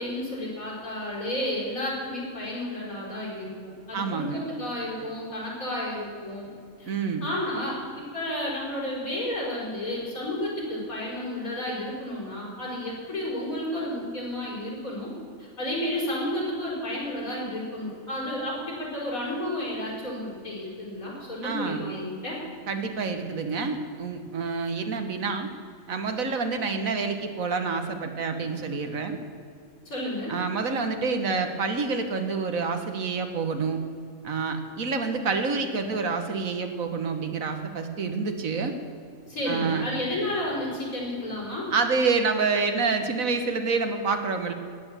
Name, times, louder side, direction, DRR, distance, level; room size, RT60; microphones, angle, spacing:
voice 1, 0.0-6.5 6.8-6.9 7.2-15.1 15.4-22.4 29.9-30.3 39.3-41.7, left 1 dB, 85° left, -4 dB, 5.5 m, -32 dB
voice 2, 3.9-4.5 6.9-7.2 21.4-21.8 22.7-25.5 25.9-29.2 30.3-33.8 34.2-38.7 39.5-39.9 41.7-44.5, right 4 dB, 80° right, 6 dB, 1.8 m, -28 dB
16.0 x 10.5 x 7.5 m, 2.3 s
omnidirectional pair, 1.4 m